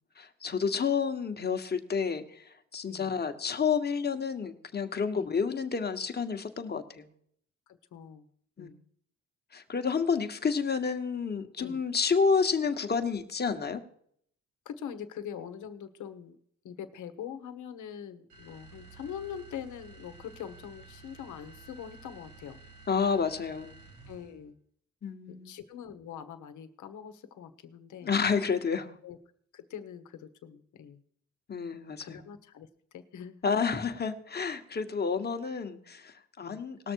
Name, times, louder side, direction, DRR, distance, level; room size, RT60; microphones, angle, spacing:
voice 1, 0.2-7.1 8.6-8.7 9.5-13.8 22.9-23.8 25.0-25.5 28.0-28.9 31.5-32.2 33.4-36.9, left 5 dB, 35° left, 6 dB, 1.3 m, -30 dB
voice 2, 7.7-8.3 8.6-8.8 11.6-11.8 14.6-16.4 16.6-22.6 24.1-24.6 25.3-28.2 29.0-29.2 29.5-31.0 32.0-32.7 32.9-33.4 36.4-36.6, left 8 dB, 75° left, 9 dB, 1.2 m, -43 dB
sound 1, 18.3-24.4, right 3 dB, 85° right, 4.2 m, -52 dB
19.0 x 6.6 x 4.6 m, 0.65 s
cardioid pair, 90°, 30 cm